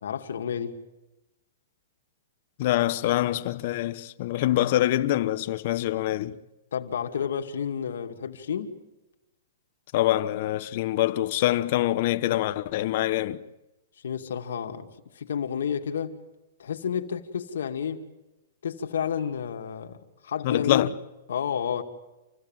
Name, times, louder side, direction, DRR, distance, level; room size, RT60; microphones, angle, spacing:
voice 1, 0.0-0.8 6.7-8.8 14.0-14.9 15.1-16.2 16.6-18.0 18.6-20.0 20.2-20.9 21.3-21.8, left 8 dB, 80° left, 2.6 m, -30 dB
voice 2, 2.6-6.4 9.9-13.4 20.4-20.9, left 14 dB, 45° left, 1.1 m, -25 dB
28.0 x 16.5 x 9.1 m
hypercardioid pair, 160°, 0 cm